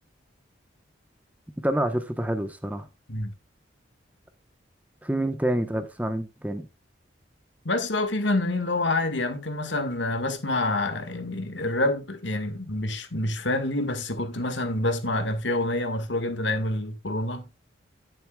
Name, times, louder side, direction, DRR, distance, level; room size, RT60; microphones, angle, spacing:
voice 1, 1.6-2.9 5.0-6.7, right 1 dB, 10° right, 1.0 m, -27 dB
voice 2, 7.7-17.5, left 2 dB, 75° left, 1.8 m, -27 dB
11.0 x 10.5 x 2.4 m
head